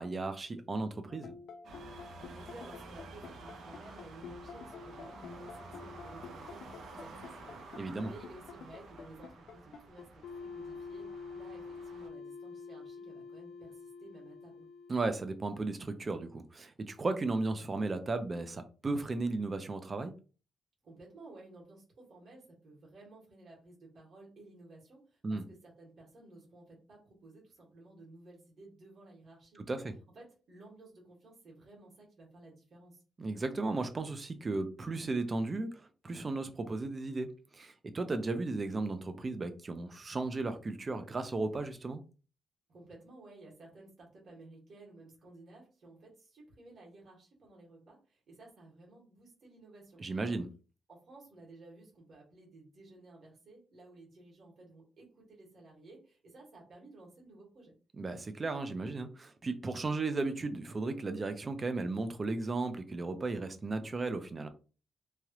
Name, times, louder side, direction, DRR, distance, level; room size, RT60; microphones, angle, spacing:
voice 1, 0.0-1.3 7.8-8.1 14.9-20.1 25.2-25.4 29.7-29.9 33.2-42.0 50.0-50.5 58.0-64.5, right 3 dB, 25° right, 0.4 m, -35 dB
sound 1, 1.1-15.1, left 5 dB, 75° left, 0.4 m, -47 dB
sound 2, 1.6-12.1, right 2 dB, 70° right, 0.6 m, -51 dB
voice 2, 2.2-14.7 20.8-29.7 30.1-33.0 42.7-50.0 50.9-57.7, right 2 dB, 50° right, 1.5 m, -55 dB
3.1 x 2.4 x 2.9 m
wide cardioid pair, 150°, 0 cm